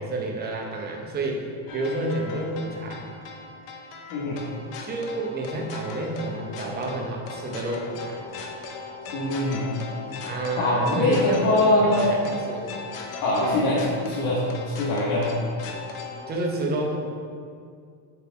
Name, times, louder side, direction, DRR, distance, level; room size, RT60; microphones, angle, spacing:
voice 1, 0.0-3.0 4.8-8.2 10.3-12.7 13.4-13.6 16.3-17.0, right 2 dB, 20° right, 1 dB, 0.7 m, -29 dB
sound 1, 1.7-16.3, left 4 dB, 45° left, 0.8 m, -38 dB
voice 2, 9.1-9.7 10.6-12.2 13.2-15.3, left 1 dB, 80° left, -8 dB, 1.7 m, -23 dB
6.9 x 4.5 x 4.7 m, 2.2 s
cardioid pair, 170°, 49 cm